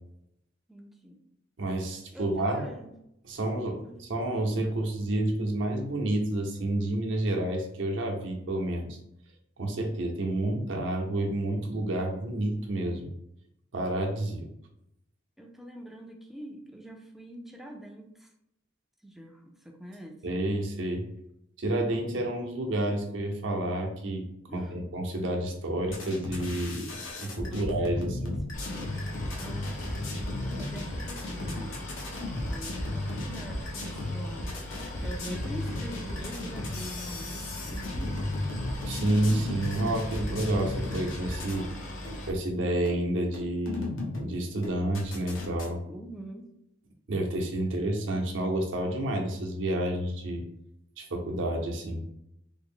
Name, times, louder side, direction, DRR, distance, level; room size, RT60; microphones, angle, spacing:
voice 1, 0.7-1.2 2.1-2.9 3.8-4.0 15.4-18.3 19.0-20.2 24.5-24.9 27.3-28.4 29.4-31.8 32.5-34.6 35.0-38.3 45.8-46.5, right 1 dB, ahead, 1 dB, 0.3 m, -44 dB
voice 2, 1.6-2.7 3.3-9.0 9.6-13.1 13.7-14.5 20.2-21.0 21.6-24.3 24.5-26.9 27.2-28.3 38.9-41.7 42.3-43.9 44.2-45.8 47.1-50.4 51.0-52.0, right 1 dB, 70° right, 1 dB, 0.7 m, -29 dB
sound 1, 25.8-41.7 42.0-42.2 42.8-43.0 43.3-44.3 44.6-45.7, left 2 dB, 90° left, 0.8 m, -35 dB
Boat Water vehicle, 28.5-42.3, left 1 dB, 40° left, 0.6 m, -40 dB
3.5 x 2.0 x 3.5 m, 0.78 s
head